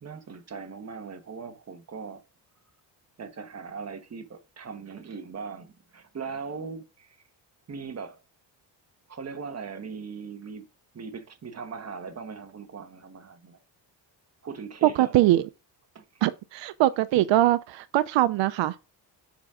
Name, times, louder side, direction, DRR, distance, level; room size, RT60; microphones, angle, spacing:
voice 1, 0.0-2.2 3.2-7.2 7.7-8.2 9.1-10.7 10.9-13.6 14.4-15.4 15.9-16.0 17.1-17.3, right 5 dB, 35° right, 1.3 m, -39 dB
voice 2, 14.8-15.4 16.2-18.8, right 15 dB, 85° right, 0.6 m, -22 dB
7.3 x 5.2 x 3.6 m
cardioid pair, 115°, 43 cm